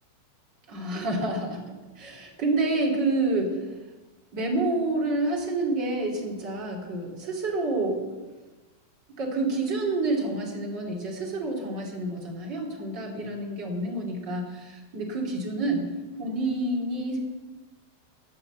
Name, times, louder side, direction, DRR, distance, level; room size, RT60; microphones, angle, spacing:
voice 1, 0.7-1.6 2.0-3.6 4.3-8.0 9.2-15.9 16.2-17.2, right 2 dB, 30° right, -1 dB, 2.8 m, -28 dB
12.5 x 11.0 x 8.0 m, 1.2 s
omnidirectional pair, 4.6 m